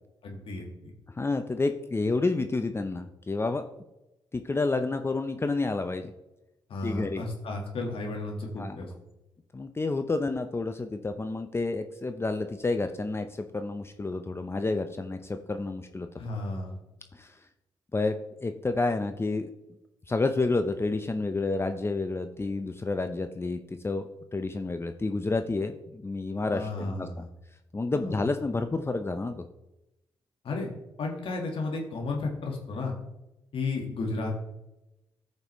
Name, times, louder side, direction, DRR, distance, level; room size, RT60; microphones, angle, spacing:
voice 1, 0.2-0.9 6.7-8.9 16.2-16.8 26.5-27.3 27.9-28.2 30.4-30.7 31.0-32.9 33.5-34.3, left 3 dB, 65° left, 0 dB, 1.7 m, -33 dB
voice 2, 1.2-3.6 4.3-6.1 6.8-7.2 8.6-8.8 9.5-16.1 17.1-17.4 17.9-19.5 20.1-27.1 27.7-29.4, left 3 dB, 25° left, 7 dB, 0.7 m, -30 dB
13.5 x 5.3 x 3.1 m, 0.94 s
supercardioid pair, 60°, 10 cm